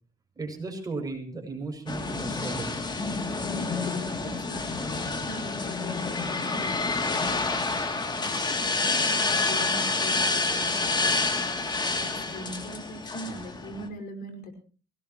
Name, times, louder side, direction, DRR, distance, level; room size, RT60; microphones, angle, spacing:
voice 1, 0.4-2.8, right 3 dB, 20° right, 3 dB, 7.3 m, -35 dB
sound 1, 1.9-13.9, left 3 dB, 25° left, 2.9 m, -28 dB
voice 2, 3.5-7.7 8.1-11.4 12.0-14.6, left 1 dB, 60° left, 5 dB, 5.4 m, -42 dB
22.5 x 19.5 x 3.1 m, 0.39 s
cardioid pair, 110°, 17 cm